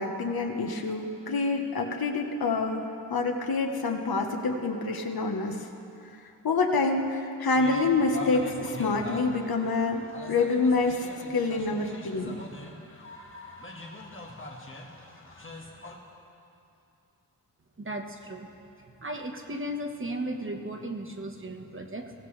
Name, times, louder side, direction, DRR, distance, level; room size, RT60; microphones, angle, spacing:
voice 1, 0.0-5.6 6.4-11.1 11.3-12.3, left 3 dB, 75° left, 2 dB, 1.2 m, -27 dB
sound 1, 7.5-15.9, left 1 dB, 35° left, 1.7 m, -42 dB
voice 2, 17.8-18.5 19.0-22.1, right 1 dB, 35° right, 4 dB, 1.3 m, -35 dB
22.5 x 16.5 x 3.3 m, 2.7 s
wide cardioid pair, 85°, 37 cm